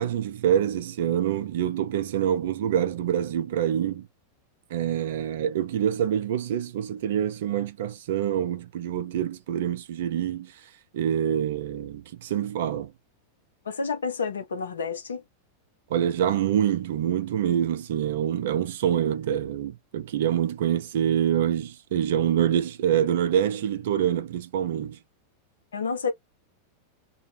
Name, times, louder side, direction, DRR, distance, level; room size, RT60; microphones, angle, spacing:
voice 1, 0.0-4.1 4.7-10.5 10.9-12.9 15.9-25.0, right 10 dB, 55° right, 0.5 m, -26 dB
voice 2, 13.7-15.2 25.7-26.1, left 5 dB, 70° left, 0.7 m, -29 dB
2.1 x 2.0 x 3.2 m
figure-of-eight pair, 90°, 0 cm